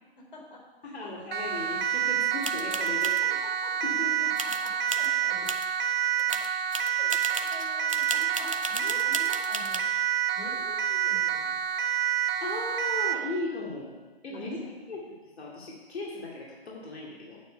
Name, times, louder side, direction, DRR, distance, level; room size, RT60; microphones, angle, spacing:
voice 1, 0.2-1.4 3.0-3.9 4.2-5.5 6.2-6.3 6.8-9.8 10.3-11.6 14.3-14.7, left 2 dB, 55° left, -1 dB, 3.3 m, -47 dB
voice 2, 0.8-3.4 3.8-4.3 12.4-13.9 14.2-14.6 14.9-17.4, left 2 dB, 80° left, -3 dB, 2.6 m, -37 dB
Siren, 1.3-13.3, right 9 dB, 65° right, 0.7 m, -28 dB
sound 1, 2.4-3.2 4.4-5.1 5.5-5.7 6.0-9.8, right 2 dB, 35° right, 0.4 m, -35 dB
9.3 x 7.4 x 5.6 m, 1.3 s
hypercardioid pair, 180°, 31 cm